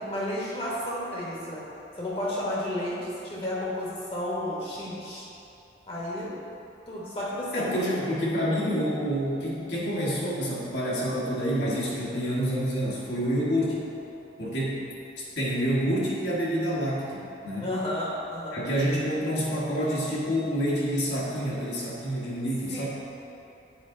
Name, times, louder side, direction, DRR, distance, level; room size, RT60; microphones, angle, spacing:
voice 1, 0.0-1.6 2.0-5.3 5.9-6.3 6.9-7.8 17.6-19.0 22.7-22.9, left 1 dB, 30° left, -6 dB, 1.2 m, -32 dB
voice 2, 7.5-13.8 14.4-14.8 15.2-17.7 18.5-22.9, equal, 65° left, -7 dB, 1.5 m, -28 dB
7.6 x 5.0 x 3.8 m, 2.8 s
head